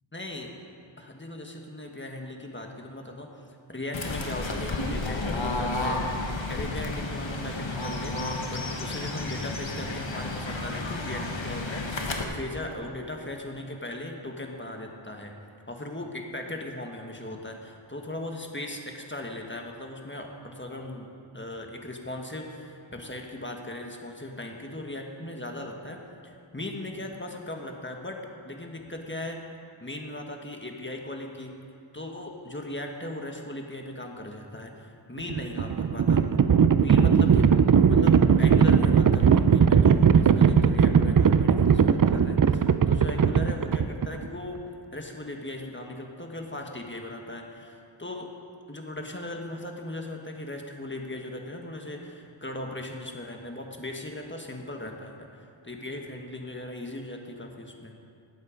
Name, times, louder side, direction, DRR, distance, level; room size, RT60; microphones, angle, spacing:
voice 1, 0.1-0.5 1.0-3.3 3.7-6.0 6.5-8.2 8.5-15.3 15.7-21.1 21.3-26.0 26.2-28.2 28.4-29.4 29.8-31.5 31.9-36.2 36.8-48.3 48.7-57.9, left 1 dB, 25° left, 2 dB, 1.5 m, -38 dB
Fowl / Bird, 3.9-12.2, left 2 dB, 70° left, 1.4 m, -31 dB
Livestock farm animals working animals, 35.2-44.3, right 7 dB, 45° right, 0.5 m, -19 dB
18.5 x 7.9 x 5.1 m, 2.5 s
wide cardioid pair, 45°, 48 cm